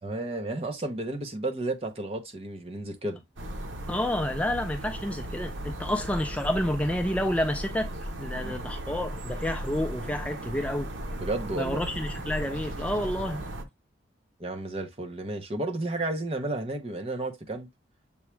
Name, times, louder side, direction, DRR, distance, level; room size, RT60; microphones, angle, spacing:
voice 1, 0.0-3.2 8.4-8.5 11.2-11.8 14.4-17.7, right 2 dB, 30° right, 0.8 m, -32 dB
sound 1, 3.4-13.6, right 1 dB, 85° right, 0.9 m, -36 dB
voice 2, 3.9-7.9 8.2-10.9 11.6-13.4, left 1 dB, 5° left, 0.4 m, -29 dB
7.0 x 2.4 x 3.1 m
head